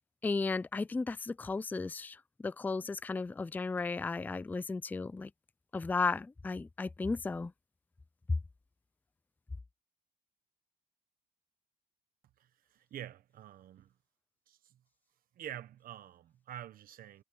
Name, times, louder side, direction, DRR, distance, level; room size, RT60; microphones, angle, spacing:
voice 1, 0.2-2.2 2.4-5.3 5.7-7.5, left 4 dB, 10° left, 0.4 m, -34 dB
voice 2, 12.7-13.9 14.5-14.7 15.4-17.2, right 11 dB, 60° right, 1.2 m, -47 dB
cardioid pair, 110°, 17 cm